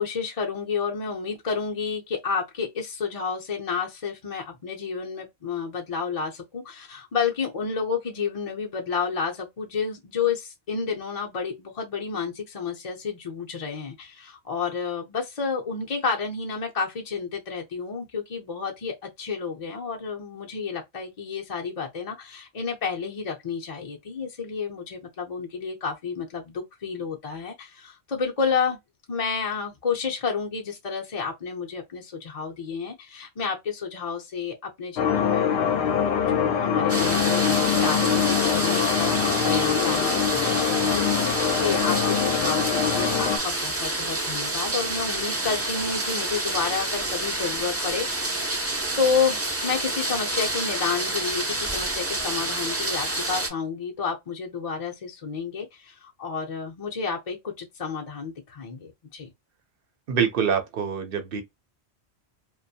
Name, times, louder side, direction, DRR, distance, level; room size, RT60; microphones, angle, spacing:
voice 1, 0.0-28.8 29.1-48.4 49.0-59.3, left 5 dB, 40° left, 0.6 m, -30 dB
sound 1, 35.0-43.4, left 8 dB, 80° left, 0.8 m, -24 dB
sound 2, 36.9-53.5, right 2 dB, 20° right, 0.5 m, -28 dB
voice 2, 60.1-61.4, right 7 dB, 60° right, 0.8 m, -25 dB
2.5 x 2.2 x 2.6 m
omnidirectional pair, 1.1 m